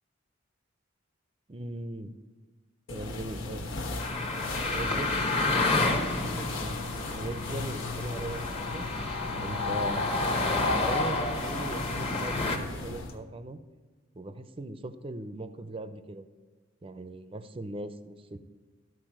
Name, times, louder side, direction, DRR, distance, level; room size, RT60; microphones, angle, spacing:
voice 1, 1.5-2.2 2.9-3.7 4.7-8.8 9.4-10.1 10.4-13.6 14.1-16.3 16.8-18.4, right 2 dB, 30° right, 11 dB, 0.5 m, -39 dB
sound 1, 2.9-13.2, left 2 dB, 85° left, 1.1 m, -37 dB
sound 2, 4.0-12.6, left 3 dB, 30° left, 1.0 m, -30 dB
13.0 x 4.7 x 6.1 m, 1.4 s
head